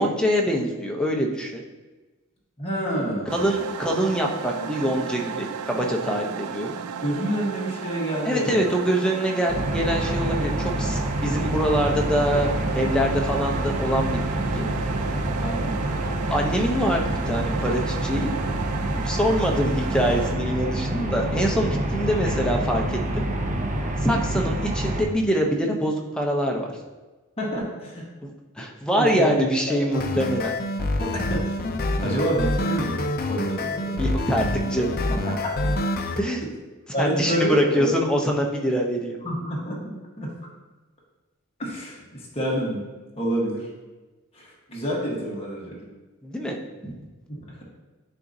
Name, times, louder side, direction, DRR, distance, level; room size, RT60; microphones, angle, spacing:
voice 1, 0.0-1.6 3.3-6.7 8.2-12.5 12.7-14.2 14.5-14.7 16.1-18.3 18.9-23.2 24.0-26.7 28.2-30.5 34.0-35.0 36.2-36.4 37.0-39.2 46.2-46.6 46.8-47.0, equal, 5° left, 0 dB, 0.6 m, -24 dB
voice 2, 2.6-3.5 7.0-8.6 15.4-15.8 27.4-28.1 28.9-29.4 29.7-29.8 30.1-30.2 31.0-31.6 32.0-34.2 35.1-35.6 36.9-37.9 39.2-39.9 40.2-40.3 41.6-42.8 43.2-43.7 44.3-45.9 47.3-47.6, right 1 dB, 30° left, -4 dB, 1.2 m, -28 dB
Fmaj-calm, 3.3-20.4, right 6 dB, 85° right, 0.3 m, -34 dB
sound 1, 9.5-25.0, right 1 dB, 35° right, 0.7 m, -27 dB
sound 2, 29.9-36.2, left 1 dB, 45° left, 0.5 m, -26 dB
9.9 x 3.8 x 2.7 m, 1.2 s
head